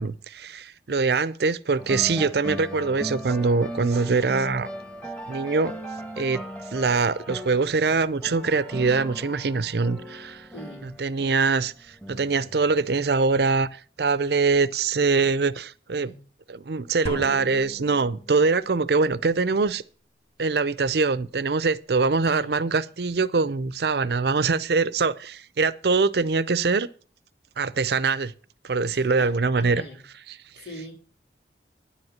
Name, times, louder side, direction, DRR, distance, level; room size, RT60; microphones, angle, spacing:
voice 1, 0.0-4.7 5.3-5.7 6.2-6.4 6.7-10.5 10.8-16.1 16.5-19.8 20.4-26.9 27.6-28.3 28.6-29.8 30.6-30.7, right 4 dB, 65° right, 0.6 m, -23 dB
sound 1, 1.8-13.1, equal, 5° left, 1.3 m, -38 dB
voice 2, 10.5-11.0 15.9-16.2 22.3-22.7 28.9-29.3 29.6-30.0 30.6-30.9, left 1 dB, 90° left, 4.0 m, -41 dB
sound 2, 17.1-18.7, equal, 35° left, 1.5 m, -37 dB
10.0 x 8.0 x 7.1 m
head